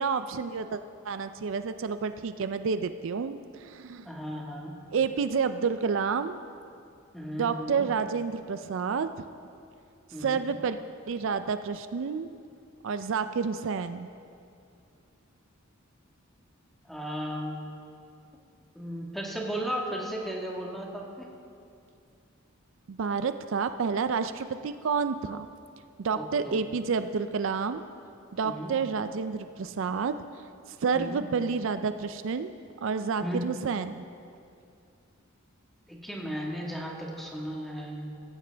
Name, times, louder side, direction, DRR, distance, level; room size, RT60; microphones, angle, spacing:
voice 1, 0.0-4.1 4.9-6.4 7.3-9.2 10.2-10.8 11.1-12.3 12.8-14.1 22.9-25.5 26.0-27.8 28.3-30.2 30.8-32.5 32.8-34.0, right 5 dB, 65° right, 11 dB, 0.4 m, -29 dB
voice 2, 4.0-4.8 7.1-7.9 10.1-10.4 16.9-17.7 18.7-21.3 26.1-26.6 28.4-28.7 30.9-31.2 33.2-33.4 35.9-38.1, equal, ahead, -2 dB, 1.6 m, -35 dB
16.0 x 15.0 x 3.4 m, 2.4 s
head